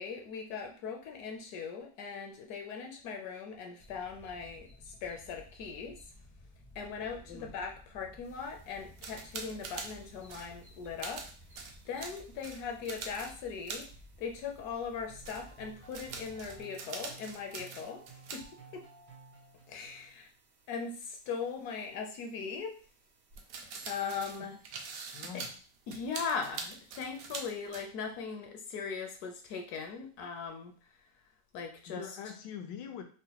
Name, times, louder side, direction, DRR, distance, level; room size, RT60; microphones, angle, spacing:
voice 1, 0.0-6.0 6.7-11.3 11.8-13.9 14.2-18.0 18.3-18.4 18.7-18.9 19.7-20.3 20.7-22.8 23.9-24.5 25.3-25.4 25.9-30.7 31.5-32.0, left 5 dB, 70° left, 3 dB, 1.0 m, -39 dB
sound 1, 3.8-16.6, equal, 5° left, 0.4 m, -56 dB
voice 2, 7.2-7.6 25.1-25.6 31.9-33.0, left 8 dB, 90° left, 5 dB, 1.3 m, -44 dB
sound 2, 8.3-14.9 15.2-18.5 18.8-18.9 20.6-20.7 23.3-27.8, right 5 dB, 70° right, 0.9 m, -45 dB
sound 3, 15.1-20.3, right 4 dB, 85° right, 1.7 m, -55 dB
4.9 x 2.1 x 2.8 m, 0.38 s
omnidirectional pair, 1.8 m